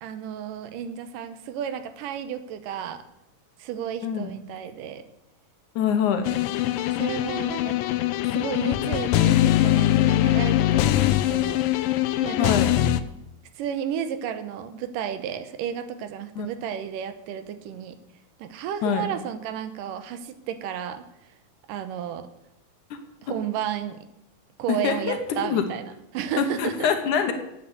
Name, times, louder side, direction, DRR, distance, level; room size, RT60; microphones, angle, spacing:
voice 1, 0.0-3.0 3.6-5.0 6.9-7.8 8.3-11.7 12.2-12.6 13.6-18.0 18.4-21.0 21.7-22.3 23.2-24.0 24.6-26.9, right 9 dB, 80° right, 10 dB, 2.3 m, -32 dB
voice 2, 5.8-6.3 12.4-12.7 16.4-16.5 18.8-19.0 23.3-23.4 24.7-25.6 26.4-27.3, left 7 dB, 70° left, 7 dB, 2.3 m, -24 dB
sound 1, 6.2-13.0, left 13 dB, 85° left, 2.3 m, -22 dB
8.6 x 8.6 x 7.9 m, 0.86 s
omnidirectional pair, 3.9 m